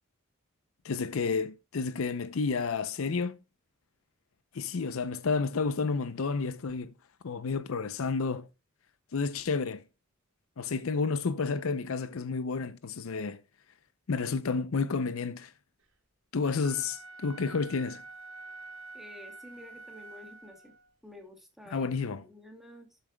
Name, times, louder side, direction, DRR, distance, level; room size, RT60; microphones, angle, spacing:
voice 1, 0.8-3.4 4.5-6.9 7.2-8.5 9.1-9.8 10.6-13.4 14.1-15.5 16.3-18.0 21.7-22.2, left 4 dB, 70° left, 0.5 m, -30 dB
Wind instrument woodwind instrument, 16.6-20.9, right 3 dB, 85° right, 3.5 m, -47 dB
voice 2, 18.9-20.7 21.0-23.0, left 1 dB, ahead, 2.1 m, -50 dB
12.5 x 7.3 x 2.2 m
head